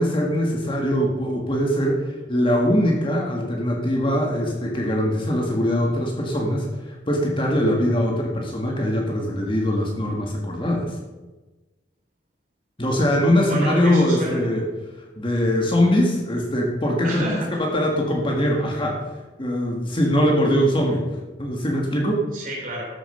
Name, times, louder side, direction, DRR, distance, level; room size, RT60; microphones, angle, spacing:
voice 1, 0.0-11.0 12.8-14.7 15.2-17.3 17.6-19.0 19.4-21.0 21.4-22.2, equal, 25° left, 0 dB, 1.7 m, -22 dB
voice 2, 13.5-14.4 17.0-17.6 22.3-22.9, right 1 dB, 45° right, -2 dB, 3.7 m, -29 dB
13.5 x 7.1 x 5.6 m, 1.2 s
head